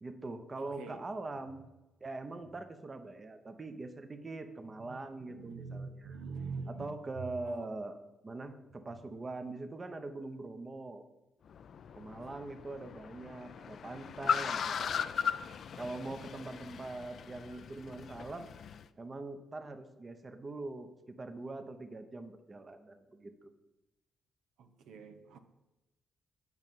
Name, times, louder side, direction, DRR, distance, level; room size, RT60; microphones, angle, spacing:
voice 1, 0.0-1.6 2.0-6.2 6.7-8.0 8.2-11.0 11.9-15.0 15.8-18.5 19.0-23.5, right 2 dB, 30° right, 8 dB, 0.9 m, -43 dB
voice 2, 0.6-1.0 4.8-5.0 5.3-6.9 7.5-7.7 24.6-25.4, right 4 dB, 80° right, 8 dB, 0.8 m, -44 dB
Car, 11.5-18.8, left 7 dB, 60° left, 0.4 m, -38 dB
8.0 x 5.3 x 7.5 m, 1.0 s
cardioid pair, 90°, 0 cm